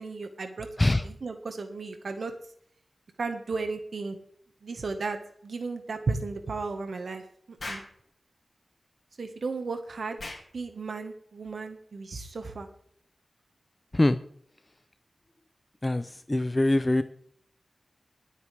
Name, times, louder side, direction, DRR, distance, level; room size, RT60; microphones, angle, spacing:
voice 1, 0.0-0.7 1.0-2.3 3.2-4.2 4.6-7.2 7.7-7.8 9.2-10.2 10.5-12.7, right 3 dB, 75° right, 6 dB, 1.4 m, -34 dB
Explosion, 7.6-8.0 10.2-10.5, left 2 dB, 45° left, 4.4 m, -38 dB
voice 2, 15.8-17.0, left 1 dB, 20° left, 11 dB, 0.6 m, -23 dB
22.0 x 8.3 x 3.4 m, 0.63 s
wide cardioid pair, 115°, 0 cm